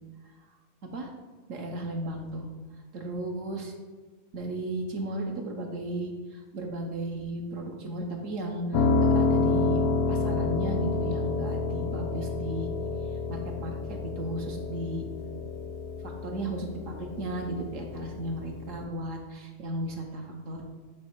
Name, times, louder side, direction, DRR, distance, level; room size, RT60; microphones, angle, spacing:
voice 1, 1.5-2.5 2.9-3.7 4.3-9.8 10.1-12.7 13.3-15.0 16.0-20.6, right 1 dB, 65° right, 1 dB, 1.2 m, -35 dB
Piano, 8.7-18.8, left 3 dB, 60° left, 0.6 m, -29 dB
9.4 x 3.2 x 4.5 m, 1.4 s
omnidirectional pair, 1.5 m